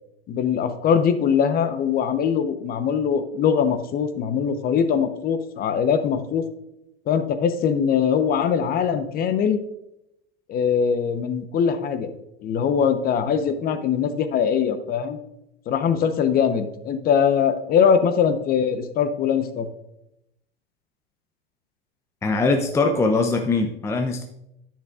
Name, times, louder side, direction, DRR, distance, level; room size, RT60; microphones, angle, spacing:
voice 1, 0.3-6.4 7.1-9.6 10.5-12.1 12.4-15.2 15.7-19.7, left 7 dB, 30° left, 10 dB, 0.9 m, -22 dB
voice 2, 22.2-24.2, left 3 dB, 10° left, 4 dB, 0.6 m, -21 dB
10.0 x 9.1 x 2.4 m, 0.84 s
hypercardioid pair, 110°, 30 cm